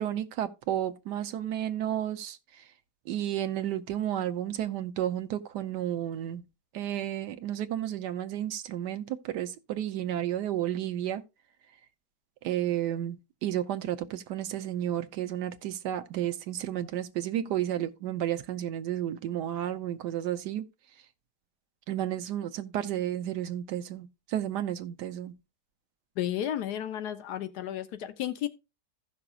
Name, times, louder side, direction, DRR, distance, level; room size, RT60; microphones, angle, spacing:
voice 1, 0.0-2.4 3.1-6.4 6.7-11.2 12.4-20.6 21.9-25.3, right 11 dB, 90° right, 1.3 m, -32 dB
voice 2, 26.2-28.5, left 11 dB, 80° left, 1.3 m, -33 dB
15.5 x 5.9 x 2.3 m
omnidirectional pair, 1.7 m